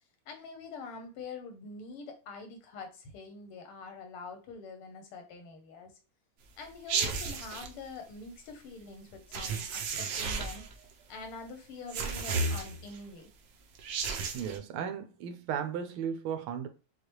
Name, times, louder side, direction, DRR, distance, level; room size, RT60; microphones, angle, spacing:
voice 1, 0.3-5.9 6.6-10.6 11.1-13.3, left 4 dB, 85° left, 1.9 m, -45 dB
sound 1, 6.9-7.7 9.3-10.7 11.9-13.0 13.7-14.6, right 4 dB, 70° right, 1.4 m, -33 dB
voice 2, 14.3-16.7, right 8 dB, 85° right, 1.5 m, -35 dB
6.6 x 2.3 x 3.0 m
omnidirectional pair, 2.4 m